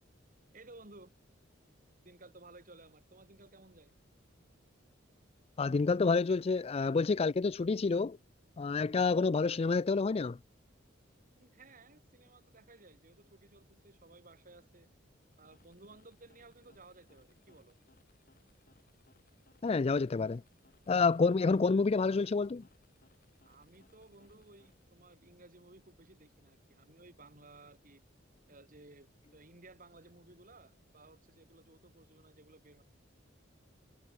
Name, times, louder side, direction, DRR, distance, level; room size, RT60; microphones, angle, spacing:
voice 1, 0.5-1.1 2.0-3.9 11.3-14.9 15.4-17.7 23.4-28.0 28.5-32.8, right 2 dB, 45° right, 3.6 m, -57 dB
voice 2, 5.6-8.2 8.6-10.4 19.6-20.4 20.9-22.6, left 4 dB, 30° left, 0.4 m, -28 dB
sound 1, 15.1-25.1, left 2 dB, 50° left, 6.2 m, -69 dB
head